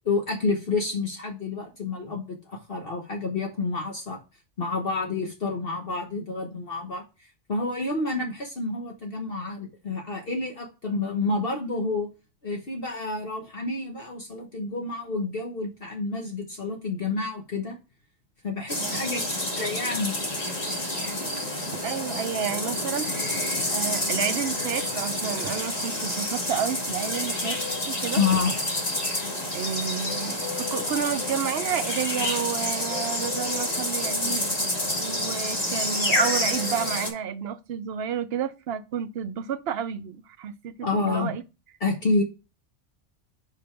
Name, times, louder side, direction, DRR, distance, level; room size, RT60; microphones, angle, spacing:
voice 1, 0.0-4.2 4.6-12.1 12.4-17.7 18.4-19.2 19.6-20.2 28.2-28.5 40.8-41.3 41.8-42.2, left 3 dB, 50° left, 1.3 m, -29 dB
sound 1, 18.7-37.1, left 1 dB, 35° left, 1.8 m, -28 dB
voice 2, 21.8-23.1 23.7-27.6 27.9-28.2 29.5-34.6 35.0-41.4, right 8 dB, 65° right, 0.8 m, -31 dB
5.1 x 5.1 x 4.5 m
omnidirectional pair, 1.2 m